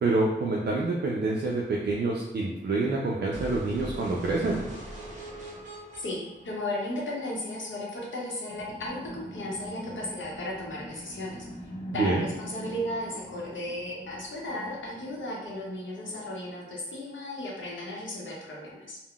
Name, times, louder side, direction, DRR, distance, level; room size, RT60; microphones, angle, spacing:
voice 1, 0.0-4.6 11.9-12.3, right 2 dB, 60° right, -3 dB, 0.4 m, -27 dB
sound 1, 3.3-7.3, right 1 dB, 40° right, 0.8 m, -42 dB
voice 2, 6.0-11.4 11.9-19.0, left 1 dB, 80° left, -3 dB, 0.8 m, -35 dB
sound 2, 8.5-16.7, equal, 35° left, 0.7 m, -44 dB
3.6 x 2.0 x 2.3 m, 0.99 s
wide cardioid pair, 65°, 20 cm